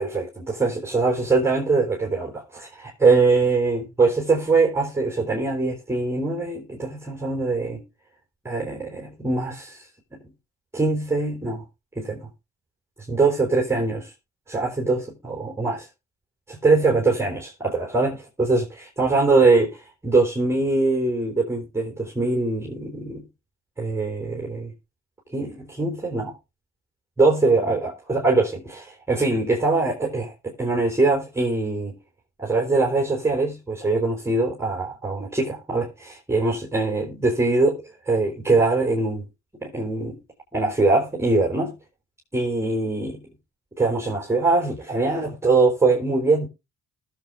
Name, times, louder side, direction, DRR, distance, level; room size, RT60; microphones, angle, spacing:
voice 1, 0.0-7.8 8.4-9.8 10.1-10.2 10.7-11.6 12.0-12.3 13.1-14.1 14.5-15.9 16.5-19.7 20.0-23.2 23.8-24.7 25.3-26.3 27.2-32.0 32.4-39.3 39.6-40.2 40.5-41.7 42.3-43.2 43.8-46.5, right 3 dB, 10° right, 4.4 m, -22 dB
20.5 x 7.9 x 2.6 m
cardioid pair, 90°, 30 cm